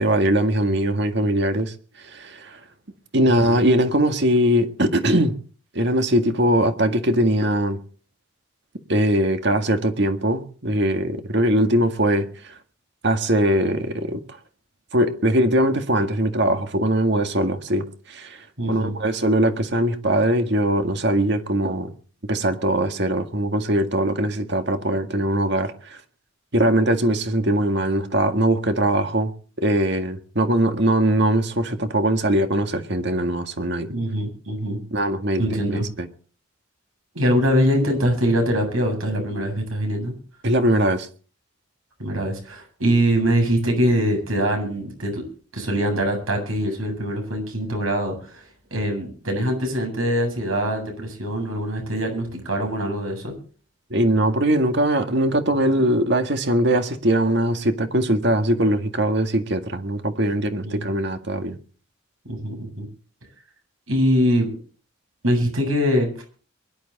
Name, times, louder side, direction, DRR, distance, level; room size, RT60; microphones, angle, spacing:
voice 1, 0.0-1.7 2.1-2.6 3.1-5.4 5.7-7.8 8.9-12.3 13.0-14.2 14.9-18.4 18.7-21.9 22.3-26.0 26.5-29.3 29.6-33.9 34.9-36.1 40.4-41.1 53.9-61.6, right 1 dB, 55° right, 1.9 m, -21 dB
voice 2, 18.6-19.0 33.9-34.8 35.4-35.9 37.1-40.1 42.0-45.2 45.5-48.4 48.7-53.3 60.6-60.9 62.3-62.9 63.9-64.5 65.2-66.1, equal, 85° right, 8.0 m, -23 dB
23.5 x 11.5 x 4.2 m
head